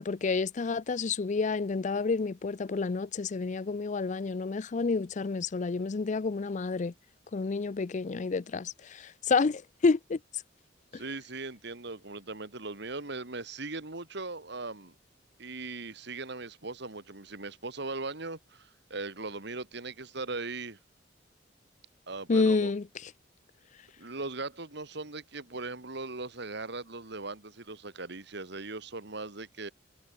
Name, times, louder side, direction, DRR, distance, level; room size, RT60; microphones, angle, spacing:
voice 1, 0.0-6.9 7.3-10.2 22.3-22.8, left 4 dB, 40° left, 0.5 m, -29 dB
voice 2, 10.9-14.9 15.4-20.8 22.1-22.7 24.0-29.7, right 3 dB, 65° right, 2.4 m, -39 dB
head